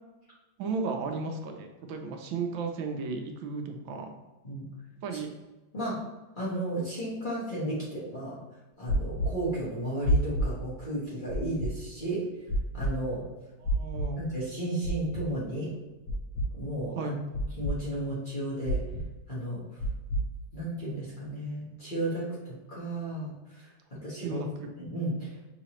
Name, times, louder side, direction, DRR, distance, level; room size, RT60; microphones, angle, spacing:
voice 1, 0.6-4.1 5.0-5.3 13.6-14.2 17.0-17.1 24.2-24.7, right 4 dB, 80° right, 4 dB, 1.4 m, -34 dB
voice 2, 6.3-8.4 8.8-12.2 12.7-13.2 14.2-15.7 16.5-17.1 17.6-18.8 19.3-19.8 20.5-23.7 24.0-24.5 24.8-25.3, right 1 dB, 30° left, -8 dB, 1.1 m, -33 dB
sound 1, 8.9-9.3 10.0-10.5 11.3-11.7 12.5-12.9 13.6-14.1 14.8-15.2 16.1-16.5 17.3-17.7 18.6-19.0 19.8-20.2, equal, 70° left, 0.7 m, -27 dB
5.6 x 2.9 x 2.9 m, 1.1 s
omnidirectional pair, 2.1 m